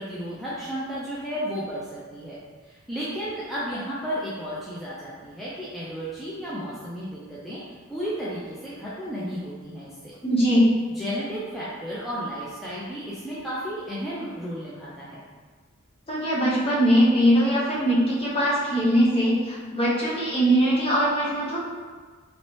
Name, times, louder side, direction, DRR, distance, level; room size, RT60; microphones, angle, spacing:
voice 1, 0.0-2.4 2.6-10.1 11.0-15.2, equal, ahead, -10 dB, 0.4 m, -33 dB
voice 2, 10.2-10.7 16.1-21.6, equal, 30° left, -7 dB, 0.8 m, -21 dB
3.0 x 2.7 x 3.0 m, 1.5 s
head